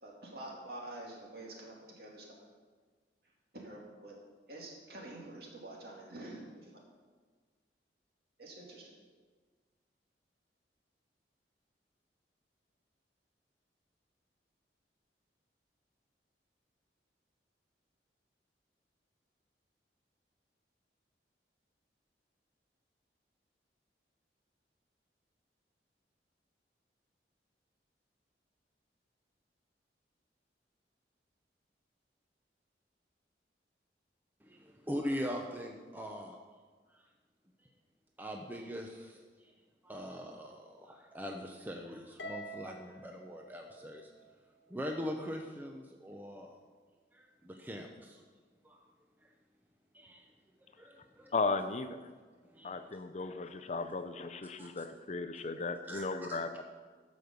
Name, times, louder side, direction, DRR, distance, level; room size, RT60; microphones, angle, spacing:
voice 1, 0.0-2.5 3.5-4.1 4.5-6.7 8.4-8.9, right 1 dB, 60° right, -2 dB, 2.5 m, -47 dB
voice 2, 34.4-36.4 36.9-37.0 38.2-39.5 39.8-44.1 44.7-46.6 47.1-48.2 48.6-48.8 49.9-50.3 50.8-51.3 52.5-52.8 54.6-54.7 55.9-56.4, equal, 10° right, 2 dB, 0.6 m, -42 dB
Harp, 42.2-44.7, right 1 dB, 90° left, 1.2 m, -47 dB
voice 3, 51.3-52.0 52.6-56.6, left 3 dB, 40° left, 10 dB, 0.5 m, -36 dB
12.5 x 5.3 x 6.7 m, 1.5 s
head